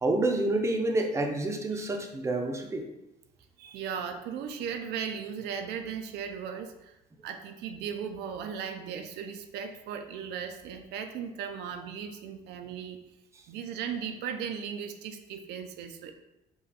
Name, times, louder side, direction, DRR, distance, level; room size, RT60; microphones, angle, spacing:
voice 1, 0.0-2.8, right 2 dB, 15° right, 3 dB, 0.6 m, -28 dB
voice 2, 3.6-7.0 7.2-13.0 13.5-16.1, right 7 dB, 80° right, 6 dB, 0.5 m, -37 dB
5.2 x 2.3 x 4.1 m, 0.93 s
cardioid pair, 110°, 17 cm